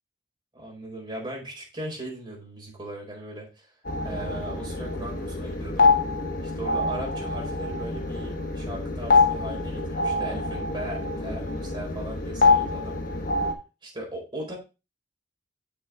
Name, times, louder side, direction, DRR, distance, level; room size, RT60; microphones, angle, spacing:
voice 1, 0.5-3.7 4.0-5.9 6.5-13.0 13.8-14.6, right 1 dB, 25° right, -2 dB, 4.4 m, -38 dB
sound 1, 3.8-13.5, left 3 dB, 50° left, 1.1 m, -25 dB
7.3 x 7.1 x 3.5 m, 0.29 s
head